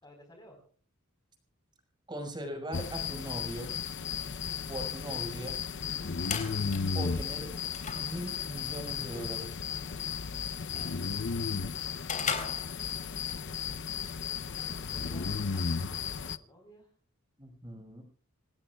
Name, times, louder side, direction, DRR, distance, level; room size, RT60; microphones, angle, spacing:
voice 1, 0.0-0.6 6.0-6.4 14.6-16.9, equal, 20° left, 2 dB, 4.3 m, -55 dB
voice 2, 2.1-3.7 4.7-5.6 6.9-7.5 7.9-9.6 17.4-18.0, right 1 dB, 20° right, 4 dB, 5.4 m, -39 dB
sound 1, 2.7-16.4, left 6 dB, 60° left, 0.7 m, -34 dB
sound 2, 6.2-13.3, left 6 dB, 35° left, 3.8 m, -41 dB
28.0 x 18.0 x 2.4 m, 0.43 s
head